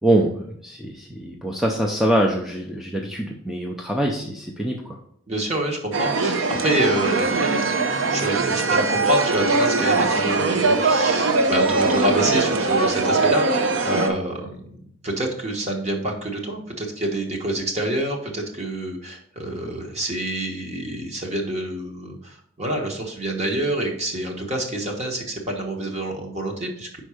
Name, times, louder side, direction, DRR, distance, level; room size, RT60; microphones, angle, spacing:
voice 1, 0.0-5.0, right 1 dB, ahead, 0 dB, 0.5 m, -24 dB
voice 2, 5.3-7.5 8.1-27.0, right 1 dB, 35° right, 1 dB, 1.2 m, -27 dB
sound 1, 5.9-14.1, right 3 dB, 85° right, 0.6 m, -21 dB
5.3 x 4.4 x 4.9 m, 0.67 s
head